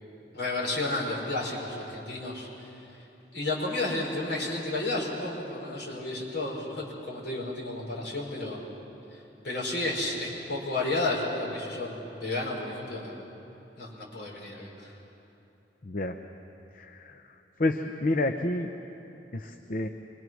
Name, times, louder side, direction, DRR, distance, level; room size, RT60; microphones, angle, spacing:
voice 1, 0.3-2.7 3.3-8.6 9.4-13.1 13.8-14.9, left 2 dB, 65° left, -3 dB, 5.0 m, -32 dB
voice 2, 15.8-16.2 16.7-17.2 17.6-18.7 19.3-19.9, left 2 dB, 50° left, 6 dB, 0.7 m, -29 dB
25.5 x 22.5 x 6.3 m, 3.0 s
head